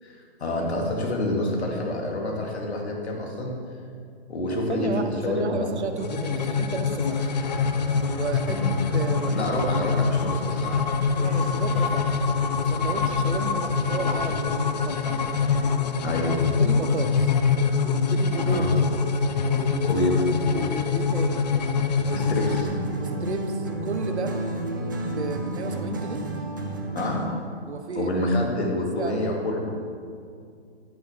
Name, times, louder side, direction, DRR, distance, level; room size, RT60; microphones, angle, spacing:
voice 1, 0.0-3.6 4.3-5.8 8.5-8.8 9.3-10.9 16.0-16.4 18.5-18.7 19.8-20.3 22.1-22.7 26.9-27.2 28.0-29.7, left 1 dB, 75° left, 0 dB, 2.4 m, -27 dB
voice 2, 4.5-7.3 8.1-8.6 8.9-9.5 11.1-12.2 12.6-15.3 16.6-17.3 17.8-18.6 19.5-20.1 20.4-21.4 23.0-24.4 25.1-26.2 27.6-28.5 28.8-29.3, right 4 dB, 80° right, 7 dB, 1.1 m, -33 dB
sound 1, 6.0-22.6, left 5 dB, 40° left, 0.5 m, -24 dB
sound 2, 7.0-22.7, left 2 dB, 20° left, 1.0 m, -44 dB
sound 3, 22.1-27.4, right 1 dB, 20° right, 0.5 m, -31 dB
10.0 x 9.6 x 3.5 m, 2.3 s
hypercardioid pair, 165°, 33 cm